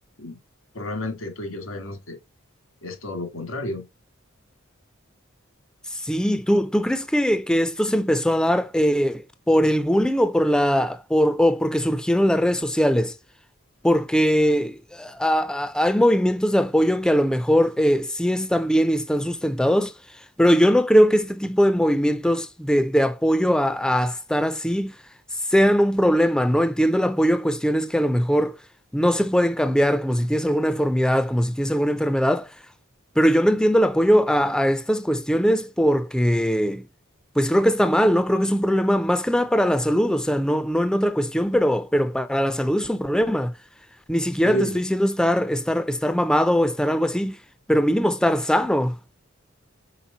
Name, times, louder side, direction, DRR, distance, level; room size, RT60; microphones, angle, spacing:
voice 1, 0.7-2.2 2.8-3.8 44.4-44.8, equal, 90° left, 2.2 m, -30 dB
voice 2, 5.9-13.1 13.8-19.9 20.4-24.9 25.5-28.6 28.9-32.5 33.2-36.8 37.4-43.5 44.1-47.4 47.7-49.0, equal, 5° left, 0.4 m, -21 dB
5.8 x 4.3 x 3.9 m
head